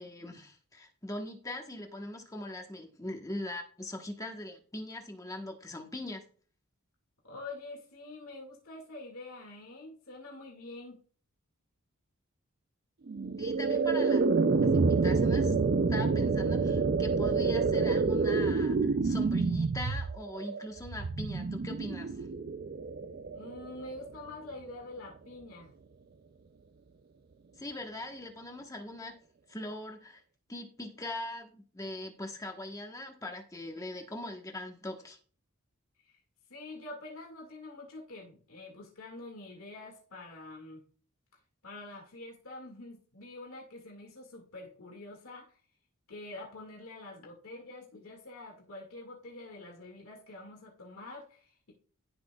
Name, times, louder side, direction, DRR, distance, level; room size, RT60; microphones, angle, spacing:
voice 1, 0.0-6.2 13.4-14.2 14.7-15.6 15.9-22.3 27.6-29.2 29.5-30.2 30.5-35.2, left 1 dB, 15° left, 3 dB, 1.1 m, -41 dB
voice 2, 7.2-11.0 23.3-25.7 36.0-36.2 36.5-40.8 41.6-45.6 46.1-51.7, left 2 dB, 70° left, -1 dB, 2.0 m, -46 dB
sound 1, 13.1-24.2, right 4 dB, 45° right, 0.4 m, -28 dB
17.0 x 6.2 x 2.3 m, 0.43 s
head